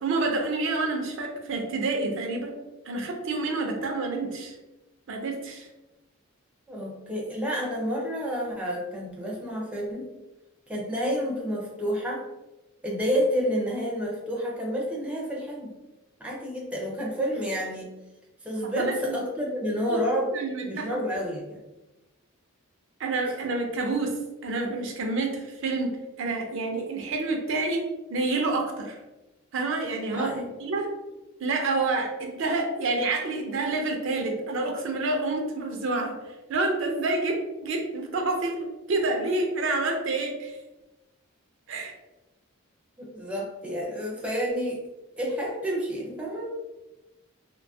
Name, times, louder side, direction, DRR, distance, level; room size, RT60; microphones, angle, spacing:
voice 1, 0.0-2.5 2.9-4.5 5.1-5.7 18.8-19.2 19.9-20.0 20.3-20.9 23.0-24.1 24.4-27.8 28.1-29.0 29.5-30.9 31.4-36.2 36.5-40.6 41.7-41.9, right 3 dB, 60° right, 3 dB, 0.4 m, -28 dB
voice 2, 6.7-10.0 10.7-12.2 12.8-15.7 16.2-17.9 18.4-20.3 20.6-21.6 30.1-30.5 43.0-44.8 45.2-46.5, equal, 5° right, -3 dB, 0.4 m, -29 dB
2.6 x 2.3 x 2.6 m, 1.0 s
head